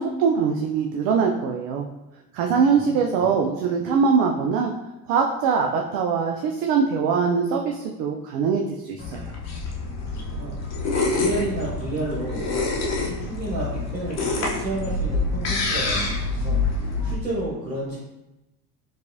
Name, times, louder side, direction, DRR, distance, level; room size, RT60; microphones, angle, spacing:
voice 1, 0.0-1.9 2.3-4.7 5.1-9.3, right 5 dB, 50° right, 1 dB, 0.4 m, -22 dB
voice 2, 2.5-3.4 10.1-10.8 11.1-12.5 12.9-18.0, right 2 dB, 80° right, -6 dB, 0.9 m, -31 dB
sound 1, 9.0-17.1, left 3 dB, 35° left, 0.9 m, -26 dB
4.5 x 2.4 x 2.6 m, 0.97 s
figure-of-eight pair, 60°, 48 cm